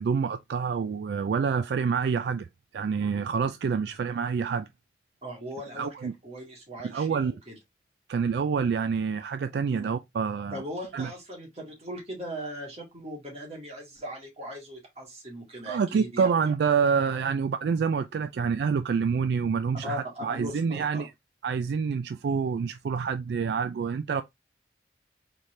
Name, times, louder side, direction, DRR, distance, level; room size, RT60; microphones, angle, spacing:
voice 1, 0.0-2.5 2.7-4.7 5.8-6.1 6.8-7.3 8.1-10.6 10.9-11.1 15.7-21.1 21.4-24.2, right 6 dB, 70° right, 0.3 m, -27 dB
voice 2, 5.2-7.6 9.7-9.9 10.5-16.3 19.8-21.1, equal, 35° right, 1.9 m, -39 dB
4.1 x 3.2 x 3.2 m
head